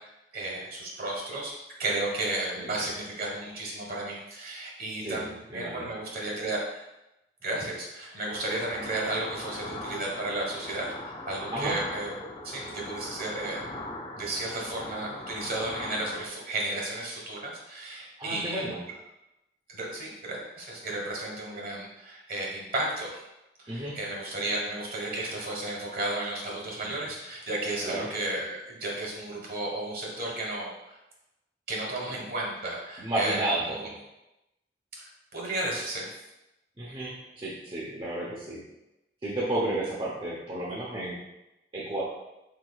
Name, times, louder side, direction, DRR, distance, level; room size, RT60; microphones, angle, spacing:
voice 1, 0.3-1.5 1.8-6.9 7.4-12.1 12.4-13.8 14.1-18.6 19.7-23.2 23.6-31.0 31.7-33.9 35.0-36.1, right 2 dB, 55° right, -2 dB, 1.3 m, -33 dB
voice 2, 5.5-5.9 11.5-11.8 18.2-18.8 23.7-23.9 27.8-28.1 33.0-33.9 36.8-38.6 39.2-41.2 41.7-42.0, right 1 dB, 30° right, -6 dB, 0.7 m, -32 dB
sound 1, 8.3-16.3, left 2 dB, 25° left, 0.4 m, -40 dB
4.7 x 4.4 x 2.3 m, 0.91 s
head